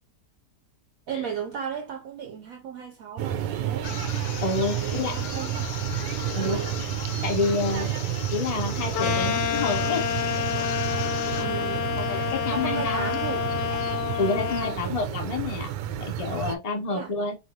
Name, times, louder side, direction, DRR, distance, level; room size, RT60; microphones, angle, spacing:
voice 1, 1.1-3.9 4.7-5.7 6.4-6.8 11.3-12.0 12.4-13.6 14.6-15.0 16.9-17.1, right 7 dB, 65° right, 0.9 m, -35 dB
sound 1, 3.2-16.6, right 10 dB, 90° right, 1.2 m, -31 dB
sound 2, 3.8-11.6, left 9 dB, 70° left, 1.0 m, -39 dB
voice 2, 4.4-5.2 6.3-6.6 7.2-7.9 8.3-10.0 12.0-13.1 14.2-15.7 16.0-17.4, left 3 dB, 50° left, 0.4 m, -28 dB
sound 3, 8.9-14.8, left 11 dB, 90° left, 1.2 m, -28 dB
3.9 x 3.3 x 2.7 m
omnidirectional pair, 1.8 m